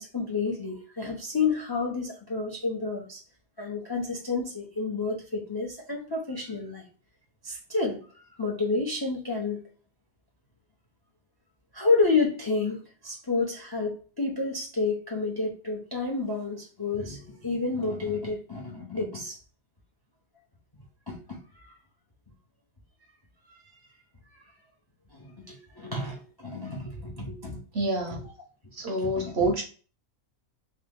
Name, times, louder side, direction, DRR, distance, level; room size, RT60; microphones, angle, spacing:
voice 1, 0.0-3.2 3.6-6.8 7.4-8.0 8.4-9.6 11.7-12.8 13.0-19.4 21.1-21.4 25.1-27.6 28.1-28.2 29.0-29.3, left 4 dB, 35° left, 0.3 m, -30 dB
voice 2, 27.7-28.2 28.7-29.6, right 1 dB, 60° right, 0.7 m, -27 dB
2.9 x 2.8 x 3.5 m
omnidirectional pair, 1.5 m